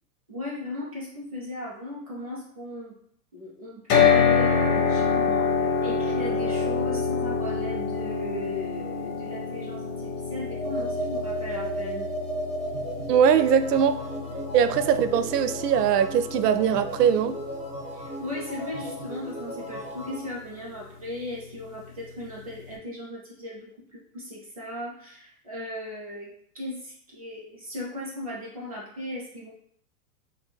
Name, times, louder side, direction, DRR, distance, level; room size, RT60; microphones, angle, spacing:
voice 1, 0.3-3.0 3.3-12.1 17.9-29.5, left 1 dB, 25° right, -5 dB, 0.4 m, -37 dB
sound 1, 3.9-18.0, left 5 dB, 65° left, 1.1 m, -27 dB
sound 2, 10.5-20.3, right 1 dB, ahead, 0.8 m, -35 dB
voice 2, 13.1-14.0 14.5-17.4, right 8 dB, 85° right, 10 dB, 0.6 m, -21 dB
4.3 x 2.2 x 3.3 m, 0.65 s
supercardioid pair, 175°, 47 cm